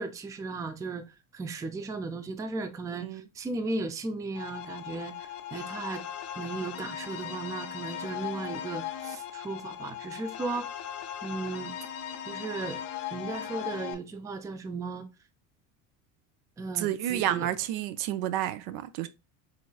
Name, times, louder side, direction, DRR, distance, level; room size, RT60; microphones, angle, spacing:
voice 1, 0.0-6.0 6.4-10.7 11.2-11.7 12.3-12.8 13.1-15.1 16.6-17.5, right 3 dB, 10° right, 0.4 m, -36 dB
sound 1, 4.3-13.9, left 10 dB, 45° left, 0.5 m, -38 dB
voice 2, 16.7-19.1, right 12 dB, 70° right, 0.5 m, -30 dB
3.9 x 3.1 x 2.3 m
supercardioid pair, 100°, 36 cm